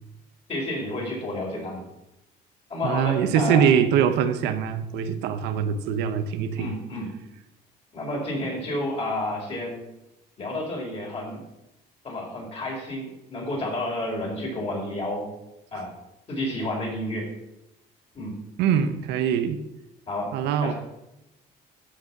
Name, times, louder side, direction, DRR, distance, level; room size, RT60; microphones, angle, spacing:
voice 1, 0.5-1.9 2.7-3.7 6.6-7.1 7.9-9.8 10.4-11.4 12.0-15.3 15.7-15.9 16.3-17.3 18.1-18.4 20.1-20.4 20.6-20.7, left 1 dB, 35° left, -1 dB, 4.4 m, -30 dB
voice 2, 2.8-6.7 18.6-19.6 20.3-20.7, right 8 dB, 90° right, 9 dB, 0.9 m, -23 dB
13.5 x 5.2 x 6.0 m, 0.91 s
cardioid pair, 110°, 17 cm